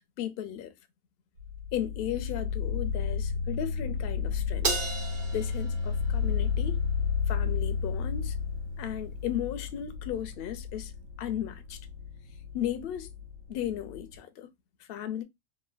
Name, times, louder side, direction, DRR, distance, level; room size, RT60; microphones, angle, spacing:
voice 1, 0.2-0.7 1.7-4.7 5.3-6.8 7.3-8.4 8.8-10.9 11.2-11.8 12.5-13.1 13.5-14.5 14.8-15.2, left 11 dB, 65° left, 0.6 m, -35 dB
sound 1, 1.4-14.2, left 6 dB, 75° right, 1.1 m, -32 dB
Crash cymbal, 4.6-7.2, right 4 dB, 50° right, 0.6 m, -35 dB
3.1 x 2.1 x 2.3 m
omnidirectional pair, 1.5 m